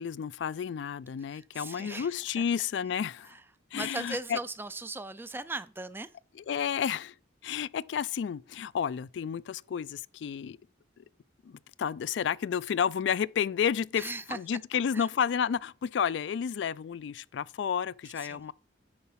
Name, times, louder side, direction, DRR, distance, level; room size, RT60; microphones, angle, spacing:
voice 1, 0.0-3.3 3.7-4.4 6.5-7.1 7.4-10.6 11.0-11.1 11.4-18.5, left 7 dB, 65° left, 0.3 m, -31 dB
voice 2, 1.3-2.4 3.2-3.4 3.7-6.1 14.0-14.4 14.9-15.1 18.2-18.5, right 2 dB, 10° right, 0.3 m, -39 dB
9.6 x 4.7 x 5.7 m
head